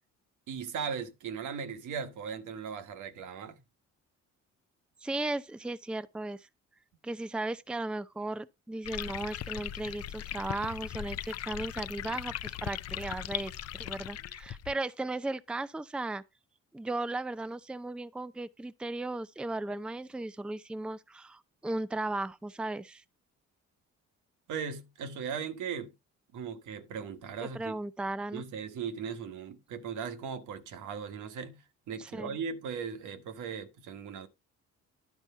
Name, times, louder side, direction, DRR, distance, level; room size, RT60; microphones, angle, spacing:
voice 1, 0.5-3.6 24.5-25.9 26.3-27.7 28.3-34.3, right 6 dB, 80° right, 1.4 m, -38 dB
voice 2, 5.0-6.5 7.0-16.2 16.7-23.0 27.4-28.4 32.0-32.4, right 2 dB, 5° right, 0.5 m, -36 dB
sound 1, 8.8-14.7, left 12 dB, 55° left, 0.5 m, -39 dB
10.5 x 4.4 x 5.5 m
cardioid pair, 90°, 30 cm